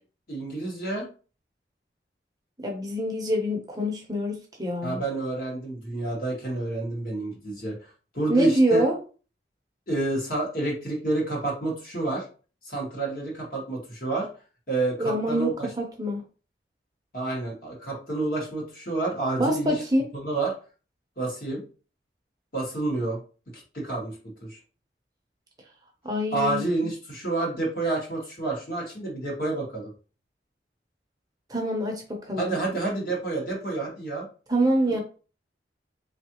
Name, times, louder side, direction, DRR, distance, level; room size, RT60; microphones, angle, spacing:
voice 1, 0.3-1.1 4.8-7.8 8.1-8.8 9.9-12.3 12.6-14.3 14.7-15.7 17.1-19.8 20.1-20.5 21.2-21.6 22.5-23.2 23.5-24.2 24.4-24.6 26.3-29.9 32.4-34.3 34.9-35.0, right 2 dB, 55° left, -3 dB, 1.7 m, -29 dB
voice 2, 2.6-5.0 8.3-9.0 15.0-16.2 19.4-20.0 26.0-26.9 31.5-32.5 34.5-35.0, right 1 dB, 20° right, 0 dB, 0.7 m, -25 dB
3.7 x 3.1 x 2.9 m, 0.37 s
head